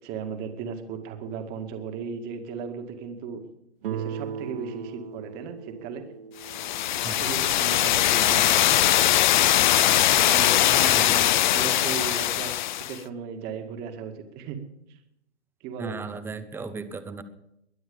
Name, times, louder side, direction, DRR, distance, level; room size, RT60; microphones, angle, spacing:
voice 1, 0.0-3.4 3.8-6.0 7.2-8.7 10.1-14.6 15.6-16.0, right 6 dB, 30° right, 6 dB, 2.1 m, -36 dB
Guitar, 3.8-8.6, right 7 dB, 55° right, 0.8 m, -39 dB
sound 1, 6.4-13.0, left 13 dB, 45° left, 0.6 m, -21 dB
voice 2, 10.8-11.2 15.8-17.2, right 4 dB, 5° right, 11 dB, 0.9 m, -36 dB
22.0 x 9.3 x 5.4 m, 0.82 s
hypercardioid pair, 135°, 34 cm